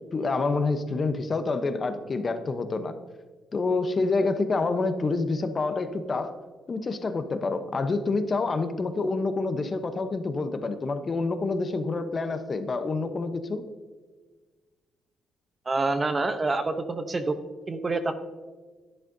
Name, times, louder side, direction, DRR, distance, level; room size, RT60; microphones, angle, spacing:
voice 1, 0.1-2.9 3.5-6.3 6.7-13.6, left 3 dB, 35° left, 9 dB, 0.8 m, -27 dB
voice 2, 15.7-17.3 17.7-18.1, right 3 dB, 30° right, 9 dB, 0.8 m, -27 dB
11.0 x 10.5 x 2.7 m, 1.4 s
cardioid pair, 90°, 0 cm